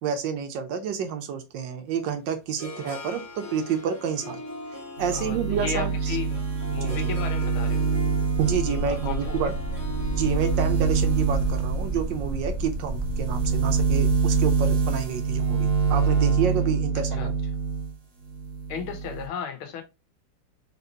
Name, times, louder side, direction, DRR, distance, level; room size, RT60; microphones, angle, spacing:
voice 1, 0.0-4.4 5.0-6.2 6.7-7.0 8.4-9.5 10.1-17.3, right 7 dB, 75° right, 1.2 m, -29 dB
Harp, 1.9-14.0, left 1 dB, 5° left, 2.0 m, -41 dB
sound 1, 5.0-17.9 18.3-19.3, right 5 dB, 50° right, 1.8 m, -26 dB
voice 2, 5.1-6.4 6.7-7.9 8.8-9.5 17.1-17.3 18.7-19.8, left 7 dB, 85° left, 1.8 m, -34 dB
sound 2, 8.3-15.9, right 1 dB, 20° left, 1.2 m, -33 dB
4.2 x 3.6 x 2.7 m
omnidirectional pair, 2.2 m